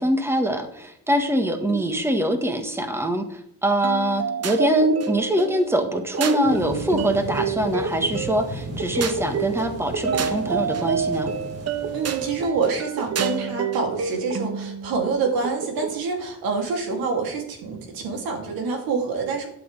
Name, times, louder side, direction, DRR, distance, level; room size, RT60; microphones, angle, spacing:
voice 1, 0.0-11.3, right 1 dB, 5° right, 6 dB, 1.5 m, -23 dB
sound 1, 3.8-16.0, right 5 dB, 45° right, 1.1 m, -28 dB
sound 2, 6.4-12.5, right 1 dB, 60° right, 5.0 m, -36 dB
voice 2, 11.9-19.5, right 4 dB, 90° right, 2 dB, 2.9 m, -26 dB
12.5 x 8.8 x 3.4 m, 0.72 s
cardioid pair, 100°, 34 cm